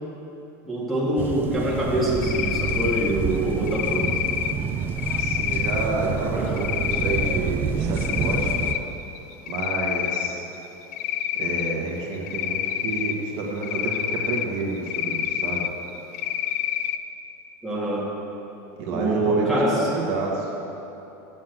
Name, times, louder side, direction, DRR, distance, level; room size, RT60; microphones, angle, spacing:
voice 1, 0.6-4.2 6.3-6.6 17.6-18.1 18.9-19.9, right 1 dB, ahead, -7 dB, 1.9 m, -24 dB
sound 1, 1.2-8.7, right 6 dB, 25° right, 0.4 m, -28 dB
Cricket, 2.2-3.1 3.7-4.5 5.0-5.8 6.6-7.4 7.8-8.8 9.2-10.3 10.9-11.7 12.3-13.1 13.6-14.4 14.9-15.7 16.1-17.0, left 11 dB, 70° left, 0.5 m, -27 dB
voice 2, 5.2-8.5 9.5-10.5 11.4-15.7 18.8-20.5, right 3 dB, 55° right, -1 dB, 1.6 m, -29 dB
7.7 x 7.3 x 8.0 m, 3.0 s
supercardioid pair, 160°, 9 cm